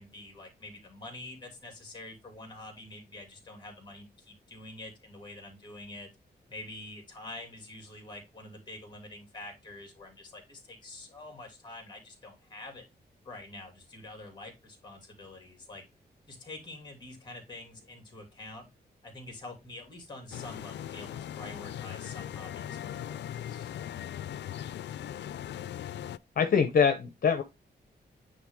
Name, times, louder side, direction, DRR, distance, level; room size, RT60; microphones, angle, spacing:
voice 1, 0.0-6.1 6.5-12.9 13.2-15.8 16.3-18.7 19.0-23.7, left 2 dB, 25° left, 2.7 m, -46 dB
sound 1, 20.3-26.2, left 10 dB, 90° left, 0.4 m, -39 dB
voice 2, 26.4-27.4, left 6 dB, 55° left, 0.9 m, -24 dB
9.3 x 3.4 x 3.7 m
wide cardioid pair, 175°, 18 cm